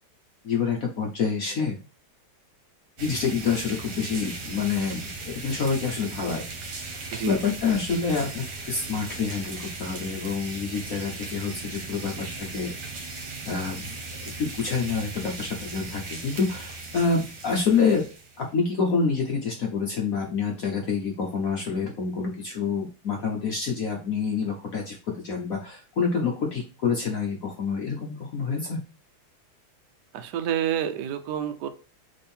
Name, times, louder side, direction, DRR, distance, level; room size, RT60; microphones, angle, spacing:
voice 1, 0.4-1.8 3.0-6.4 7.2-12.7 13.5-18.1 18.4-28.8, left 5 dB, 65° left, 1 dB, 0.8 m, -27 dB
sound 1, 3.0-18.5, right 3 dB, 55° right, 1.6 m, -38 dB
voice 2, 30.1-31.7, right 10 dB, 75° right, 8 dB, 1.0 m, -28 dB
3.5 x 3.5 x 4.2 m, 0.35 s
omnidirectional pair, 2.3 m